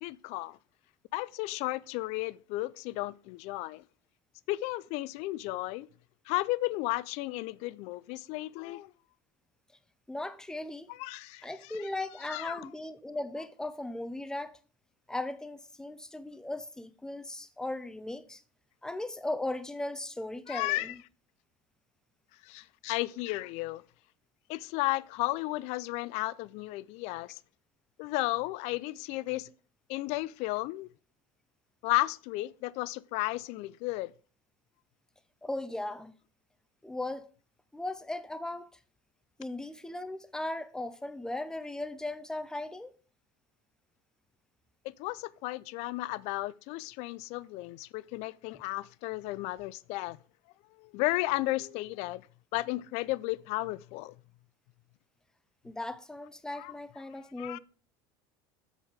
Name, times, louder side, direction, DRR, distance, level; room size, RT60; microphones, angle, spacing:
voice 1, 0.0-0.6 1.1-3.8 4.5-5.9 6.3-8.9 10.9-11.9 12.2-12.7 20.5-20.9 22.4-23.8 24.5-27.4 28.0-29.5 29.9-30.9 31.8-34.1 44.8-50.2 50.8-52.2 52.5-54.2 56.5-56.7 57.4-57.6, left 19 dB, 65° left, 0.4 m, -34 dB
voice 2, 10.1-10.9 11.4-14.5 15.1-18.4 18.8-20.9 35.4-36.1 36.8-37.3 37.7-38.7 39.4-42.9 55.6-57.6, left 2 dB, 5° left, 0.7 m, -37 dB
8.1 x 5.7 x 4.9 m
supercardioid pair, 115°, 12 cm